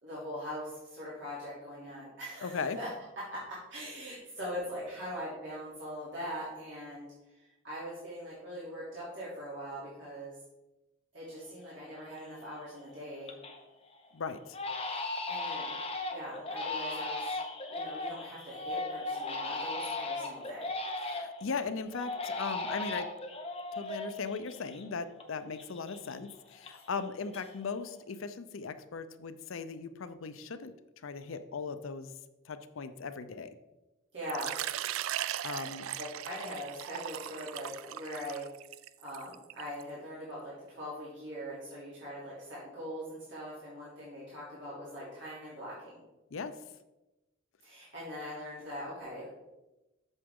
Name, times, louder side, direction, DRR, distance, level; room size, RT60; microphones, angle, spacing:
voice 1, 0.0-2.9 3.3-7.1 7.4-10.3 11.1-13.3 15.3-15.7 16.1-17.3 17.7-20.7 34.1-34.5 36.0-38.4 39.0-46.0 47.6-49.3, equal, 60° right, -9 dB, 3.0 m, -41 dB
voice 2, 2.4-2.8 14.1-14.6 14.9-15.1 21.0-23.1 23.7-30.7 31.0-32.1 32.5-33.5 35.4-35.9 46.3-46.6, left 5 dB, 80° left, 11 dB, 0.5 m, -38 dB
Crying sobbing, 11.4-11.5 11.9-12.4 12.8-13.6 13.9-14.1 14.5-21.5 21.9-25.3 25.5-27.0 27.3-27.9, left 2 dB, 30° left, 0.9 m, -37 dB
Water / Liquid, 34.3-39.8, right 12 dB, 85° right, 0.3 m, -38 dB
8.1 x 6.9 x 3.7 m, 1.0 s
head